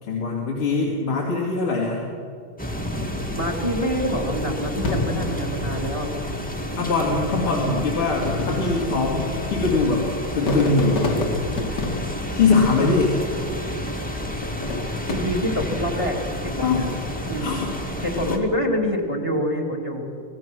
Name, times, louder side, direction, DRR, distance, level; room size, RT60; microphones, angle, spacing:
voice 1, 0.0-2.0 5.8-6.2 6.8-10.1 10.4-11.1 12.3-13.2 16.6-16.9 17.4-17.7 18.2-18.4, left 3 dB, 85° left, -3 dB, 3.5 m, -22 dB
sound 1, 2.6-18.4, left 1 dB, 5° left, 2.0 m, -30 dB
voice 2, 3.3-6.1 12.8-13.0 15.1-16.8 17.3-17.6 18.0-20.1, equal, 15° right, 2 dB, 2.6 m, -26 dB
Fireworks, 4.8-6.5 7.3-7.4 8.1-13.4 14.4-16.2 16.8-17.2, left 2 dB, 55° left, 2.4 m, -29 dB
26.0 x 18.0 x 6.2 m, 2.4 s
omnidirectional pair, 2.3 m